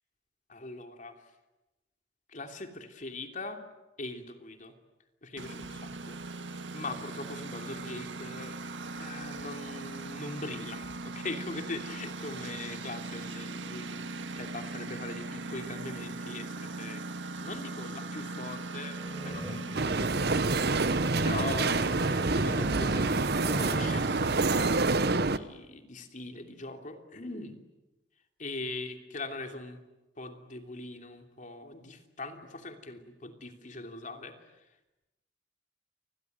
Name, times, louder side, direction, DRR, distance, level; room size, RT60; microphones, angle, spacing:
voice 1, 0.5-1.2 2.3-3.6 4.0-4.7 5.2-8.6 9.0-17.0 17.4-20.9 21.2-27.6 28.4-29.8 30.2-34.7, left 2 dB, 45° left, 5 dB, 3.0 m, -41 dB
Engine, 5.4-24.7, right 3 dB, 80° right, 1.8 m, -39 dB
sound 1, 18.9-19.9 20.5-23.1 23.4-24.5 24.7-24.8 25.1-25.5, right 1 dB, 5° right, 5.3 m, -41 dB
sound 2, 19.7-25.4, right 3 dB, 60° right, 1.1 m, -27 dB
29.0 x 21.5 x 9.4 m, 1.0 s
head